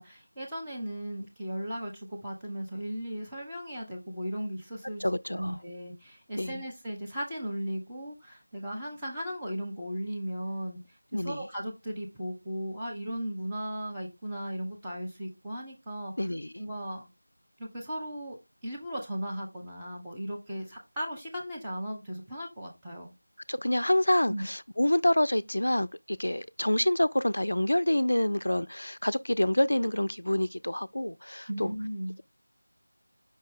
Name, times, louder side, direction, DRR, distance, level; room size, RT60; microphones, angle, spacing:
voice 1, 0.0-5.0 5.3-10.8 11.1-16.1 16.6-17.1 17.6-23.1 24.3-24.4 31.5-32.1, equal, 5° right, 0.8 m, -36 dB
voice 2, 5.0-5.6 6.4-6.6 11.1-11.5 16.2-16.6 23.5-31.7, left 1 dB, 65° left, 0.3 m, -27 dB
5.2 x 2.8 x 3.6 m
figure-of-eight pair, 170°, 0 cm